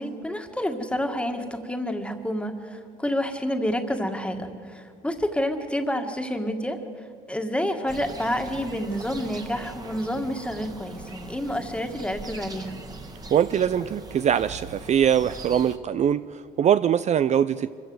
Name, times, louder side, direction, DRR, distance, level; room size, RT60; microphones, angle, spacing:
voice 1, 0.0-6.8 7.3-12.8, equal, 5° left, 5 dB, 1.9 m, -29 dB
sound 1, 7.9-15.8, right 3 dB, 20° right, 1.7 m, -41 dB
voice 2, 13.3-17.7, right 9 dB, 45° right, 13 dB, 0.5 m, -22 dB
25.0 x 15.5 x 7.9 m, 2.2 s
cardioid pair, 110°, 17 cm